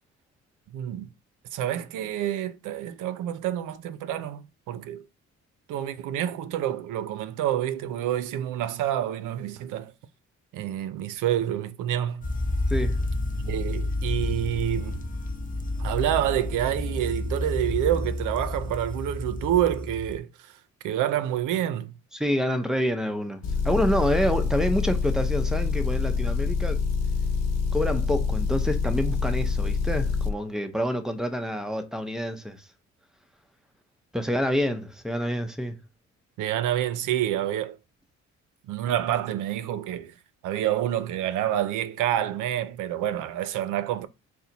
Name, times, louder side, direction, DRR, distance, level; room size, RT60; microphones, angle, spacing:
voice 1, 0.7-1.1 1.5-5.0 5.7-9.9 10.5-12.3 13.4-15.0 15.8-20.3 20.8-21.9 36.4-37.8 38.7-40.1 40.4-44.1, right 11 dB, 85° right, 0.5 m, -28 dB
sound 1, 12.2-20.2, left 2 dB, 25° left, 0.7 m, -30 dB
voice 2, 12.7-13.0 22.1-26.8 27.7-32.6 34.1-35.8, equal, ahead, 0.7 m, -27 dB
Motor vehicle (road) / Engine, 23.4-30.3, left 5 dB, 60° left, 0.7 m, -26 dB
4.3 x 2.1 x 3.9 m
cardioid pair, 90°, 30 cm